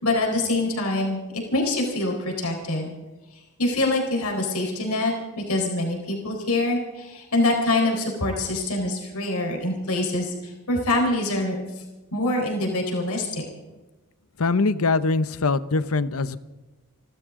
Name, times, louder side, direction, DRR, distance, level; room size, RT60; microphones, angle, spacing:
voice 1, 0.0-1.2 1.5-2.9 3.6-5.1 5.5-11.6 12.1-13.4, left 2 dB, 90° left, 1 dB, 4.2 m, -25 dB
voice 2, 14.4-16.4, left 3 dB, 70° left, 14 dB, 0.8 m, -22 dB
29.0 x 13.0 x 3.8 m, 1.1 s
head